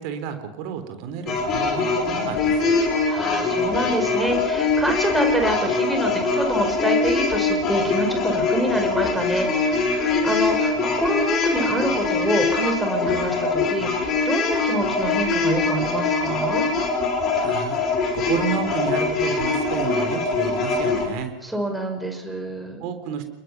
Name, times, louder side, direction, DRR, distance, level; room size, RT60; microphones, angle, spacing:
voice 1, 0.0-2.8 17.4-17.8 18.1-21.3 22.8-23.3, right 7 dB, 45° right, 8 dB, 3.6 m, -30 dB
sound 1, 1.3-21.1, left 4 dB, 30° left, 5.4 m, -23 dB
voice 2, 3.1-16.6 21.4-22.8, right 1 dB, 5° right, 3 dB, 5.6 m, -26 dB
29.5 x 22.0 x 6.0 m, 0.94 s
figure-of-eight pair, 90°, 0 cm